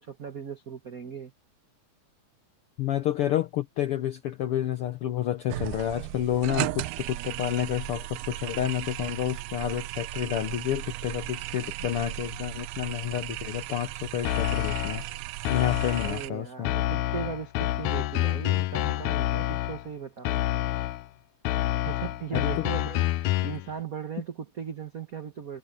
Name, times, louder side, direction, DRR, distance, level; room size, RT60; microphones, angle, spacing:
voice 1, 0.0-1.3 16.0-20.4 21.8-25.6, right 7 dB, 70° right, 0.8 m, -38 dB
voice 2, 2.8-15.0 15.5-16.7 22.3-22.5, left 11 dB, 70° left, 1.4 m, -30 dB
sound 1, 5.5-16.3, right 16 dB, 90° right, 2.2 m, -36 dB
sound 2, 14.2-15.1 15.4-16.3 16.6-19.9 20.2-21.1 21.4-23.7, left 15 dB, 90° left, 2.1 m, -28 dB
omnidirectional pair, 3.4 m